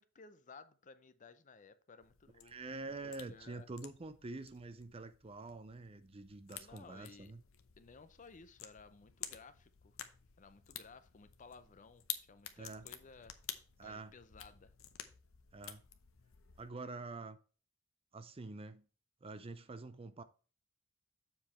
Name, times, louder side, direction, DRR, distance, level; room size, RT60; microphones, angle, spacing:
voice 1, 0.0-3.7 6.5-7.3 7.8-10.0 10.4-13.4 13.8-14.7, left 4 dB, 35° left, 0.6 m, -58 dB
sound 1, 2.0-16.7, left 10 dB, 70° left, 0.8 m, -51 dB
voice 2, 2.4-7.4 12.6-12.9 13.8-14.1 15.5-15.8 16.6-17.4 18.1-18.8 19.2-20.2, right 3 dB, 25° right, 0.5 m, -46 dB
7.3 x 4.6 x 4.3 m
head